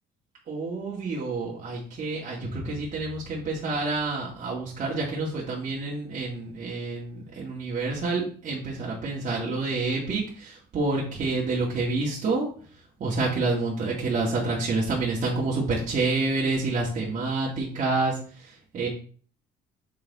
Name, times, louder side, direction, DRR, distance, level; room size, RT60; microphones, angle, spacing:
voice 1, 0.5-12.5 13.0-18.9, right 3 dB, 45° right, -5 dB, 2.0 m, -28 dB
6.6 x 4.1 x 4.1 m, 0.44 s
cardioid pair, 110°, 17 cm